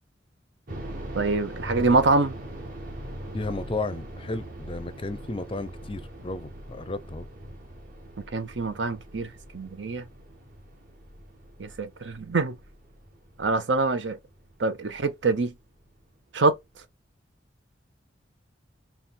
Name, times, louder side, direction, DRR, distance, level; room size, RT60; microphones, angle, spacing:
Deep-Splatter-Ambiance, 0.7-15.5 15.8-15.9 16.5-16.8, right 1 dB, 50° right, 1.3 m, -41 dB
voice 1, 1.2-2.3 8.3-9.3 9.5-10.1 11.6-12.6 13.4-14.2 14.6-15.5 16.3-16.6, right 3 dB, 70° right, 0.7 m, -25 dB
voice 2, 3.3-7.3, left 2 dB, 30° left, 0.5 m, -33 dB
4.2 x 2.4 x 3.7 m
head